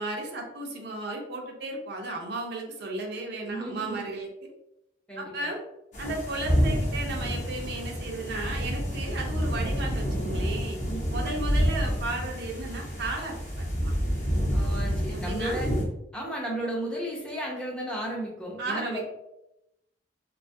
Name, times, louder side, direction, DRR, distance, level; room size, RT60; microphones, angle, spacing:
voice 1, 0.0-4.3 5.2-5.6 6.0-10.8 11.1-13.9 15.1-15.6 18.6-19.1, right 2 dB, 60° right, 1 dB, 0.5 m, -34 dB
voice 2, 3.5-4.0 5.1-5.3 10.9-11.0 11.3-11.5 14.5-15.7 16.1-19.0, right 1 dB, 5° left, -3 dB, 0.5 m, -34 dB
sound 1, 5.9-15.8, equal, 40° left, 0.8 m, -28 dB
2.6 x 2.3 x 2.5 m, 0.87 s
head